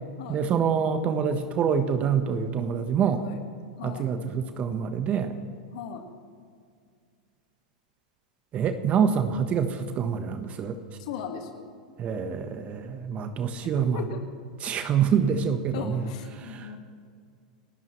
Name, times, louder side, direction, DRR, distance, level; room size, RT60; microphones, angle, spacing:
voice 1, 0.3-3.2 3.8-5.4 8.5-10.8 12.0-14.0 14.6-16.0 16.5-16.8, right 7 dB, 35° right, 8 dB, 1.2 m, -26 dB
voice 2, 3.0-3.4 3.8-4.1 5.7-6.0 11.0-11.7 13.9-14.2 15.7-16.8, left 7 dB, 65° left, 4 dB, 1.9 m, -37 dB
29.5 x 13.5 x 3.3 m, 2.1 s
hypercardioid pair, 105°, 4 cm